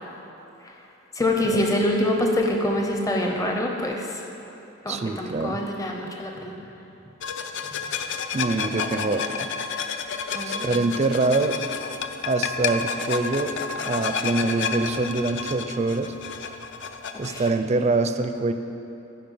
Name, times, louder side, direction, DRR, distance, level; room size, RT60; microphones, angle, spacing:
voice 1, 1.1-4.2 4.8-6.5 10.3-10.7 17.1-17.4, left 1 dB, 15° left, 1 dB, 0.6 m, -25 dB
voice 2, 4.9-5.6 8.3-9.5 10.4-11.6 12.3-13.5 13.8-16.1 17.2-18.5, right 3 dB, 30° right, 8 dB, 0.4 m, -24 dB
sound 1, 7.2-17.5, left 5 dB, 60° left, 0.5 m, -30 dB
14.0 x 5.1 x 5.5 m, 3.0 s
head